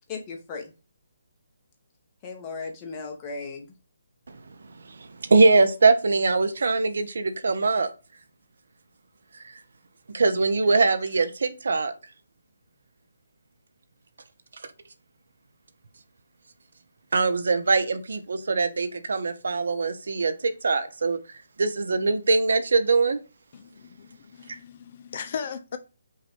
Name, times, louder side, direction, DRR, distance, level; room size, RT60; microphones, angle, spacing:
voice 1, 0.1-0.7 2.2-3.7, left 4 dB, 25° left, 1.2 m, -36 dB
voice 2, 4.9-7.9 10.1-11.9 17.1-21.2 21.6-23.2, right 3 dB, 70° right, 0.7 m, -22 dB
voice 3, 23.5-25.8, left 7 dB, 45° left, 0.5 m, -37 dB
5.4 x 2.6 x 3.5 m
figure-of-eight pair, 145°, 0 cm